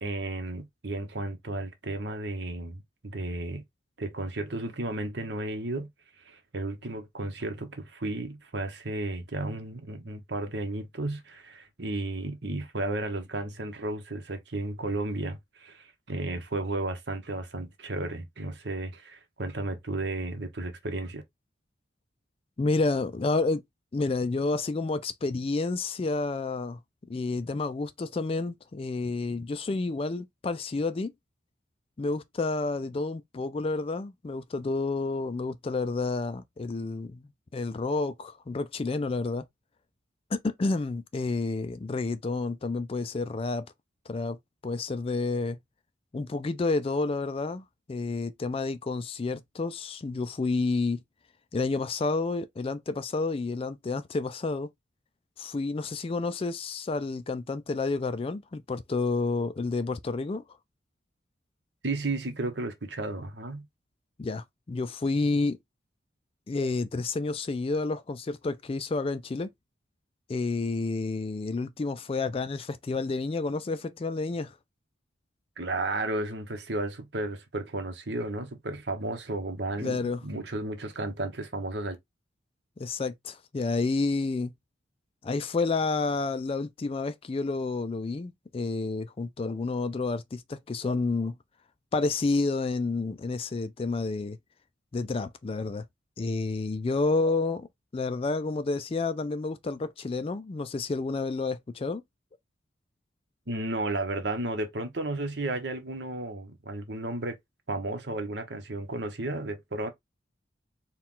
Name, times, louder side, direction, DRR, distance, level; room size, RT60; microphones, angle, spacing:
voice 1, 0.0-3.6 4.0-5.9 6.2-21.2 61.8-63.7 75.6-82.0 103.5-107.4 107.7-109.9, right 2 dB, 65° right, 1.1 m, -33 dB
voice 2, 22.6-23.6 23.9-26.8 27.1-31.1 32.0-39.5 40.3-43.7 44.1-44.4 44.6-45.6 46.1-51.0 51.5-54.7 55.4-60.4 64.2-65.6 66.5-69.5 70.3-74.5 79.8-80.2 82.8-84.5 85.2-91.3 91.9-94.4 94.9-95.8 96.2-97.7 97.9-102.0, left 3 dB, 30° left, 0.3 m, -30 dB
4.4 x 2.4 x 3.7 m
head